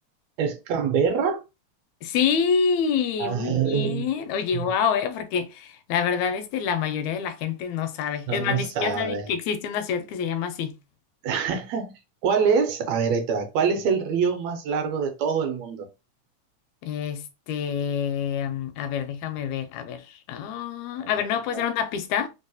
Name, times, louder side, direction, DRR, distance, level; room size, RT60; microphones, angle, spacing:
voice 1, 0.4-1.4 3.2-4.1 4.5-4.7 8.3-9.3 11.2-11.9 12.2-15.9 21.0-21.2 21.5-21.6, right 6 dB, 75° right, 1.7 m, -25 dB
voice 2, 2.0-10.7 16.8-22.3, left 7 dB, 80° left, 1.8 m, -27 dB
4.6 x 2.0 x 2.6 m
omnidirectional pair, 3.4 m